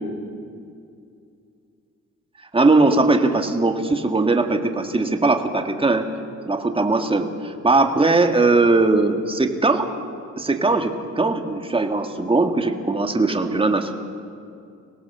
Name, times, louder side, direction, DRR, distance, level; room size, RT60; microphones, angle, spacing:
voice 1, 2.5-6.1 6.5-9.9 10.4-13.9, right 3 dB, 20° right, 5 dB, 1.8 m, -19 dB
23.5 x 18.5 x 6.8 m, 2.4 s
cardioid pair, 90°, 30 cm